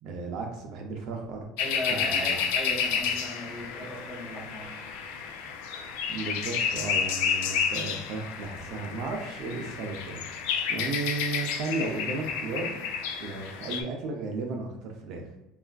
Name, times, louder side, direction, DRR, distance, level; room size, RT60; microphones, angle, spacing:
voice 1, 0.0-1.5 1.9-2.4 6.1-10.2 10.7-12.8 13.2-15.3, right 3 dB, 45° right, 2 dB, 0.4 m, -34 dB
sound 1, 1.6-13.8, left 6 dB, 85° left, 0.3 m, -31 dB
voice 2, 1.6-4.7, left 1 dB, 20° left, -4 dB, 0.7 m, -37 dB
3.3 x 2.4 x 2.2 m, 0.98 s
cardioid pair, 175°, 0 cm